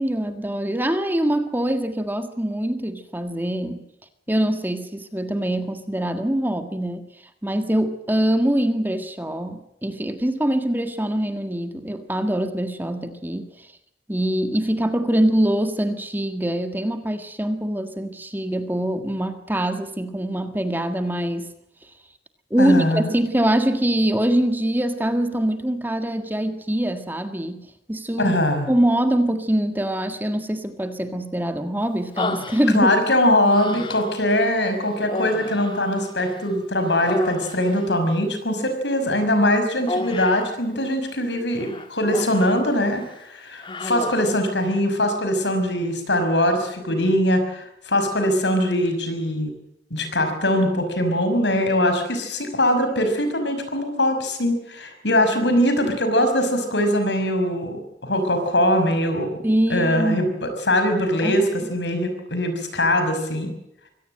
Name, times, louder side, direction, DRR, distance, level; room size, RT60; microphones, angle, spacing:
voice 1, 0.0-3.9 4.3-7.1 7.4-13.7 14.1-21.5 22.5-28.3 28.7-32.9 59.4-60.3 61.2-61.5, right 1 dB, 10° right, 8 dB, 1.6 m, -23 dB
voice 2, 22.6-23.1 28.2-28.7 32.7-49.5 49.9-59.4 59.7-63.5, left 1 dB, 80° left, 7 dB, 5.8 m, -22 dB
Human voice, 32.2-33.1 33.5-34.3 35.0-36.5 36.8-37.9 39.9-40.6 41.6-42.6 43.0-43.2 43.6-44.4, left 2 dB, 30° left, 1.7 m, -31 dB
24.0 x 17.5 x 7.7 m, 0.80 s
head